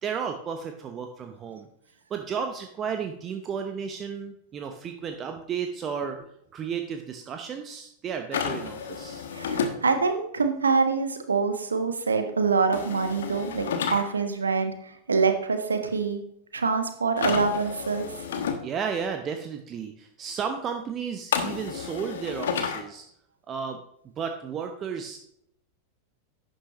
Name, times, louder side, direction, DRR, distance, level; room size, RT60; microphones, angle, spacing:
voice 1, 0.0-1.7 2.1-9.3 18.6-23.1 23.5-23.8 24.2-25.2, right 6 dB, 25° right, 6 dB, 0.8 m, -33 dB
sound 1, 8.3-9.7 12.7-14.0 17.2-18.6 21.3-22.8, left 7 dB, 60° left, 1.1 m, -30 dB
voice 2, 9.3-16.2 16.5-18.1, right 4 dB, 75° right, 7 dB, 1.2 m, -25 dB
11.0 x 9.2 x 3.0 m, 0.73 s
figure-of-eight pair, 90°, 0 cm